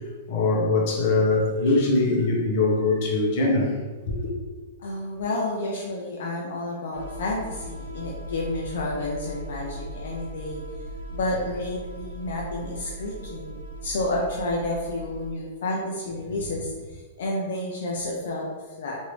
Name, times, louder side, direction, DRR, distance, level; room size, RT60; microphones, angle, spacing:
voice 1, 0.3-3.7 4.1-4.2, left 2 dB, 50° left, 0.8 m, -22 dB
voice 2, 4.8-10.6 11.1-19.0, left 2 dB, 75° left, 0.5 m, -30 dB
sound 1, 6.9-15.3, right 1 dB, 80° right, 0.5 m, -38 dB
2.9 x 2.6 x 3.2 m
hypercardioid pair, 140°, 0 cm